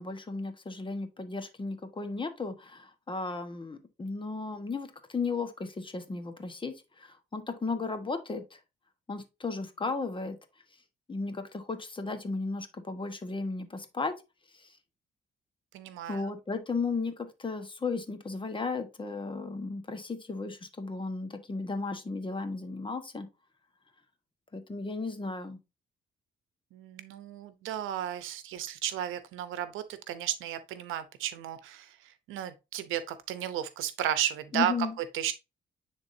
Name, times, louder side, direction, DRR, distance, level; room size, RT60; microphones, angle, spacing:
voice 1, 0.0-8.6 9.1-10.4 11.1-14.1 14.5-14.7 16.1-23.3 24.5-25.6 34.5-35.0, left 3 dB, 25° left, 1.3 m, -35 dB
voice 2, 15.7-16.3 26.7-35.3, right 11 dB, 90° right, 0.8 m, -34 dB
9.7 x 3.7 x 2.7 m
cardioid pair, 90°, 20 cm